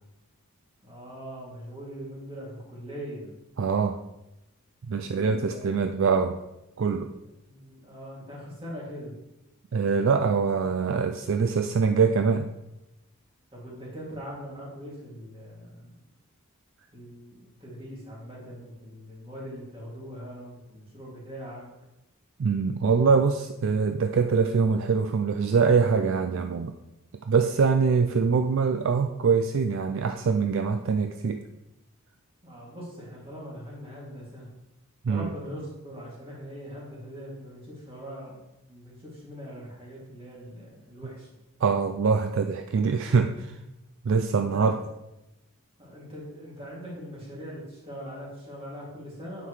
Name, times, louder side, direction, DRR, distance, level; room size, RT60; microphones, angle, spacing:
voice 1, 0.8-3.3 5.0-5.7 7.4-9.1 13.5-16.0 16.9-21.6 32.4-34.5 35.1-38.3 38.7-41.3 44.4-44.8 45.8-49.5, equal, 25° right, -6 dB, 2.4 m, -41 dB
voice 2, 3.6-4.0 4.9-6.4 6.8-7.1 9.7-12.5 22.4-26.7 27.3-31.4 35.0-35.3 41.6-43.5 44.0-44.8, right 5 dB, 55° right, 6 dB, 0.3 m, -24 dB
9.0 x 5.9 x 3.2 m, 0.93 s
head